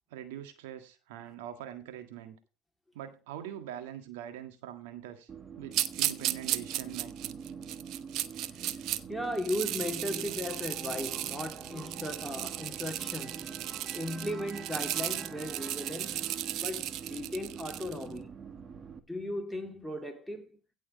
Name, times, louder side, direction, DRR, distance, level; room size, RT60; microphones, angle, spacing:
voice 1, 0.1-2.4 2.9-5.3 5.6-7.4, right 11 dB, 80° right, 1.7 m, -43 dB
sound 1, 5.3-19.0, right 6 dB, 35° right, 1.5 m, -45 dB
sound 2, 5.7-9.0 9.4-18.0, right 13 dB, 60° right, 0.9 m, -35 dB
voice 2, 9.1-18.4 19.1-20.6, left 1 dB, ahead, 2.8 m, -37 dB
16.5 x 6.4 x 4.1 m
hypercardioid pair, 85°, 0 cm